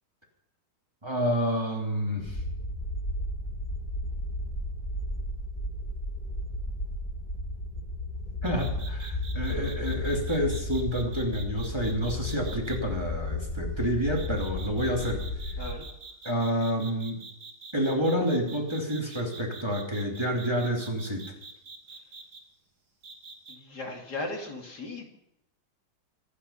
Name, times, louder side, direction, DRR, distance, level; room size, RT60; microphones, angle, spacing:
voice 1, 1.0-2.4 8.4-15.2 16.2-17.2 17.7-21.3, equal, 15° right, -1 dB, 2.8 m, -29 dB
sound 1, 2.2-15.7, left 2 dB, 25° left, 2.7 m, -34 dB
sound 2, 8.4-12.8 14.1-22.4 23.0-23.6, right 4 dB, 60° right, 2.5 m, -45 dB
voice 2, 23.5-25.1, left 2 dB, 60° left, 1 dB, 3.1 m, -37 dB
25.0 x 9.8 x 5.7 m, 0.80 s
omnidirectional pair, 2.0 m